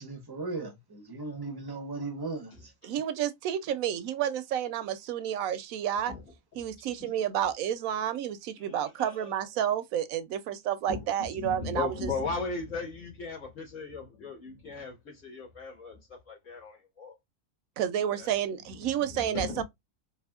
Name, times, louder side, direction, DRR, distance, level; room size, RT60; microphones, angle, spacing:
voice 1, 0.0-2.7, right 3 dB, 25° right, 0.5 m, -37 dB
voice 2, 2.8-6.1 6.6-12.1 17.8-19.6, right 10 dB, 70° right, 0.9 m, -30 dB
voice 3, 8.6-9.3 10.9-17.1 18.2-18.3 18.8-19.6, left 4 dB, 55° left, 1.9 m, -37 dB
4.1 x 3.1 x 2.2 m
omnidirectional pair, 1.6 m